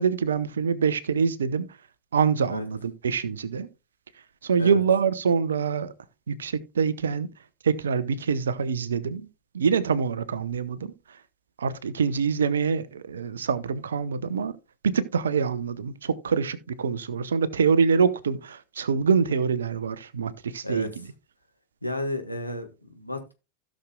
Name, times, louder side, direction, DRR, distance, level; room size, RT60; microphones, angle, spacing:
voice 1, 0.0-1.7 2.1-3.7 4.4-5.9 6.3-7.3 7.6-9.3 9.5-10.9 11.6-14.5 14.8-20.9, right 6 dB, 65° right, 0.9 m, -25 dB
voice 2, 21.8-23.3, left 1 dB, 85° left, 1.6 m, -32 dB
16.0 x 6.4 x 2.3 m
figure-of-eight pair, 90°, 0 cm